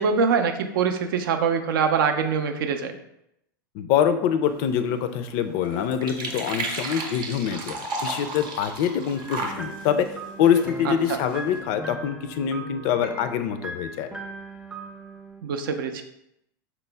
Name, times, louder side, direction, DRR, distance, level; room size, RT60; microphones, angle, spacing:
voice 1, 0.0-2.9 10.9-11.2 15.4-16.0, right 6 dB, 75° right, 7 dB, 0.4 m, -24 dB
voice 2, 3.7-10.1 10.4-14.1, left 8 dB, 55° left, 9 dB, 0.4 m, -25 dB
sound 1, 4.4-11.6, right 3 dB, 40° right, 0.7 m, -35 dB
sound 2, 9.2-15.4, right 1 dB, 5° right, 0.4 m, -39 dB
4.3 x 2.0 x 3.3 m, 0.80 s
hypercardioid pair, 100°, 12 cm